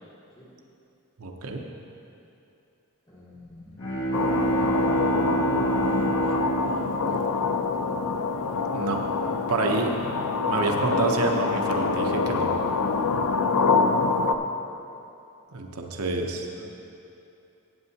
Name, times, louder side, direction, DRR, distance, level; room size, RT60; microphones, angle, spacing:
voice 1, 1.2-1.6 8.7-9.0 9.5-10.0 10.5-12.5 15.5-16.5, right 3 dB, 70° right, 2 dB, 0.8 m, -27 dB
voice 2, 3.1-3.9 6.7-7.4 16.5-16.6, left 1 dB, 20° left, -7 dB, 2.2 m, -48 dB
Bowed string instrument, 3.6-8.3, right 2 dB, 65° left, 1.8 m, -28 dB
sound 1, 4.1-14.4, left 4 dB, 85° left, 0.5 m, -25 dB
15.5 x 8.1 x 2.8 m, 2.7 s
head